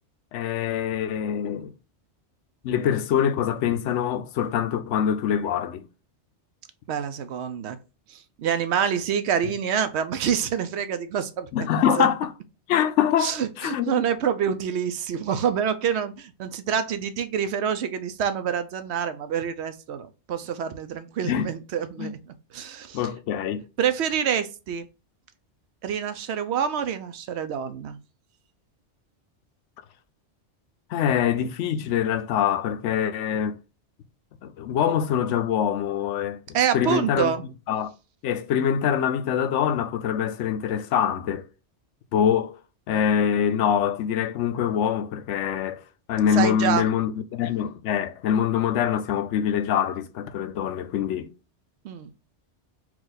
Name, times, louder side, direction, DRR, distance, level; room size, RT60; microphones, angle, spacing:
voice 1, 0.3-1.7 2.6-5.9 11.5-12.3 12.7-14.0 21.2-21.5 22.0-22.1 22.9-23.6 30.9-33.6 34.4-36.4 36.7-37.3 37.7-37.9 38.2-41.5 42.1-42.6 42.9-45.8 46.1-51.3, left 8 dB, 85° left, 0.9 m, -24 dB
voice 2, 6.9-7.8 8.1-11.7 12.0-12.1 13.2-22.1 22.5-23.0 23.8-24.9 25.8-28.0 36.5-37.4 46.3-46.8 51.8-52.1, right 8 dB, 70° right, 0.9 m, -27 dB
4.6 x 2.4 x 3.9 m
omnidirectional pair, 1.2 m